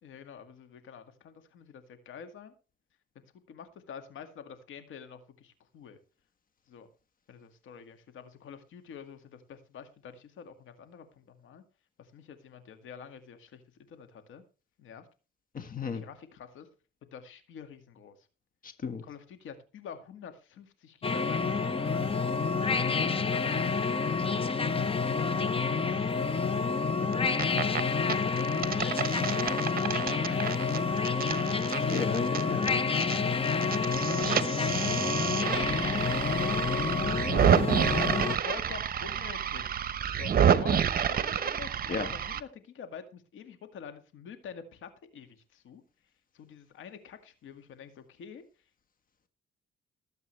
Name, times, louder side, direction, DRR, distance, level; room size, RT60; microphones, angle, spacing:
voice 1, 0.0-2.5 3.2-6.0 6.7-6.9 7.3-11.6 12.0-14.4 14.8-15.1 15.9-16.7 17.1-18.3 19.0-22.0 22.6-26.5 27.1-27.3 28.2-31.3 32.5-32.7 34.2-34.5 35.9-38.0 38.4-39.8 40.2-45.8 46.3-48.4, left 7 dB, 75° left, 9 dB, 2.0 m, -47 dB
voice 2, 15.5-16.0 18.6-19.0 22.9-23.1 27.0-27.1 31.9-32.8 41.9-42.1, left 5 dB, 45° left, 9 dB, 1.6 m, -34 dB
sound 1, 21.0-38.4, left 5 dB, 30° left, 1.0 m, -29 dB
sound 2, 27.1-27.8 28.1-33.2 33.4-42.4, right 8 dB, 50° right, 1.0 m, -29 dB
19.5 x 8.1 x 3.3 m, 0.34 s
cardioid pair, 90°, 20 cm